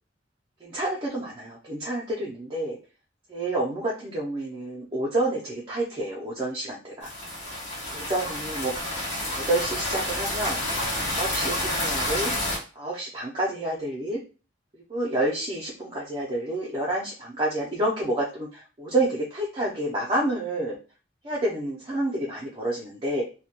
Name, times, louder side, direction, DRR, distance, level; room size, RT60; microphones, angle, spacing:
voice 1, 0.6-2.8 3.3-7.1 7.9-8.7 9.3-10.6 11.1-12.3 12.8-14.2 14.9-20.8 21.2-23.2, right 1 dB, 25° right, -5 dB, 0.4 m, -29 dB
sound 1, 7.0-12.6, left 1 dB, 65° left, 0.9 m, -29 dB
2.1 x 2.1 x 2.8 m, 0.35 s
head